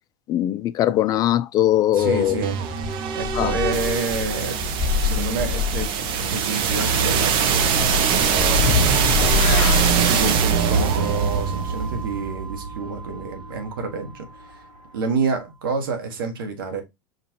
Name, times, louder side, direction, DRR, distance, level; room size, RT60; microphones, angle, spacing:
voice 1, 0.3-2.4 3.3-3.6, left 12 dB, 35° left, 0.3 m, -20 dB
voice 2, 1.9-2.6 3.1-7.6 7.9-9.3 10.0-14.3 14.9-16.8, right 4 dB, 80° right, 1.2 m, -28 dB
sound 1, 2.0-13.8, right 6 dB, 45° right, 0.8 m, -23 dB
sound 2, 2.2-2.4 2.8-6.4 7.4-11.0, left 7 dB, 10° left, 1.5 m, -27 dB
Motorcycle / Accelerating revving vroom, 6.5-15.3, left 10 dB, 50° left, 0.7 m, -37 dB
5.2 x 2.5 x 2.9 m
hypercardioid pair, 105°, 12 cm